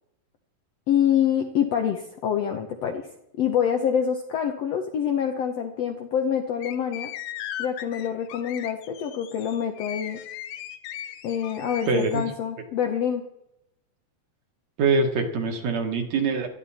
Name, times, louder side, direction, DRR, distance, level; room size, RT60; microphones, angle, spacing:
voice 1, 0.9-3.0 3.4-7.1 7.6-10.2 11.2-13.2, left 8 dB, 70° left, 4 dB, 1.6 m, -26 dB
sound 1, 6.6-12.2, left 11 dB, 85° left, 2.8 m, -38 dB
voice 2, 11.9-12.3 14.8-16.5, right 4 dB, 60° right, 4 dB, 2.3 m, -24 dB
18.5 x 13.0 x 4.2 m, 0.82 s
omnidirectional pair, 4.0 m